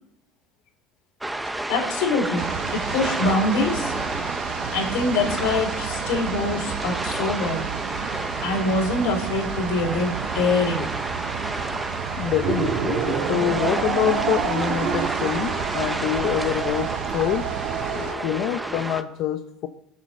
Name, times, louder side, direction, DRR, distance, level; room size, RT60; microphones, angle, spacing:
sound 1, 1.2-19.0, right 1 dB, 5° right, 0.7 m, -31 dB
voice 1, 1.7-2.4 2.7-3.9 4.7-7.7 8.4-10.9, left 3 dB, 80° left, 2 dB, 4.0 m, -24 dB
sound 2, 2.4-18.1, right 10 dB, 75° right, 0.9 m, -33 dB
voice 2, 12.2-17.6 17.9-19.7, left 11 dB, 60° left, 7 dB, 0.7 m, -26 dB
sound 3, 12.3-18.8, right 8 dB, 60° right, 1.6 m, -29 dB
22.0 x 7.3 x 6.6 m, 0.84 s
cardioid pair, 140°, 0 cm